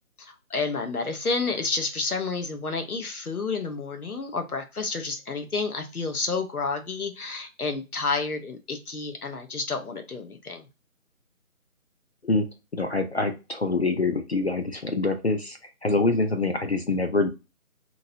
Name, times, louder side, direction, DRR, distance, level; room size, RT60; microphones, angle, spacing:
voice 1, 0.2-10.7, left 4 dB, 85° left, 6 dB, 0.9 m, -30 dB
voice 2, 12.7-17.3, left 3 dB, 50° left, 7 dB, 0.5 m, -25 dB
2.9 x 2.7 x 2.7 m, 0.27 s
figure-of-eight pair, 155°, 43 cm